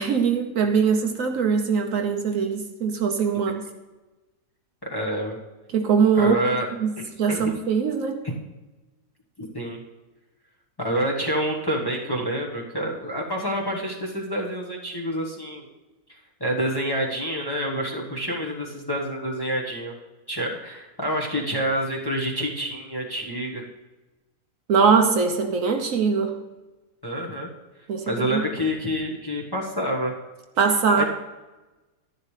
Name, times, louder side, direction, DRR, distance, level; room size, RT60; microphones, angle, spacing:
voice 1, 0.0-3.6 5.7-6.4 6.8-6.9 7.2-8.2 24.7-26.3 27.9-28.4 30.6-31.0, right 6 dB, 65° right, 5 dB, 1.1 m, -21 dB
voice 2, 4.8-5.4 6.1-6.7 7.0-7.5 8.2-8.3 9.5-9.8 10.8-15.6 16.4-19.9 20.3-23.6 27.0-27.5 28.1-30.1 31.0-31.1, equal, 15° left, -2 dB, 1.1 m, -27 dB
11.5 x 11.0 x 3.3 m, 1.1 s
omnidirectional pair, 1.6 m